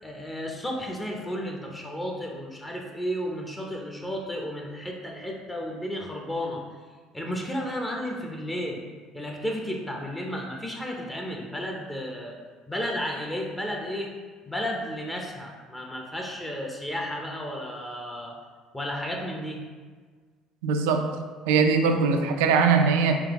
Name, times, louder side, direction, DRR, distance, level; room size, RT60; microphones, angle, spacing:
voice 1, 0.0-6.6 7.1-8.8 9.1-12.4 12.7-14.1 14.5-18.4 18.7-19.6, equal, 15° left, 0 dB, 0.6 m, -33 dB
voice 2, 20.6-21.0 21.5-23.1, right 5 dB, 85° right, 5 dB, 0.3 m, -21 dB
3.5 x 3.4 x 2.9 m, 1.5 s
supercardioid pair, 75°, 0 cm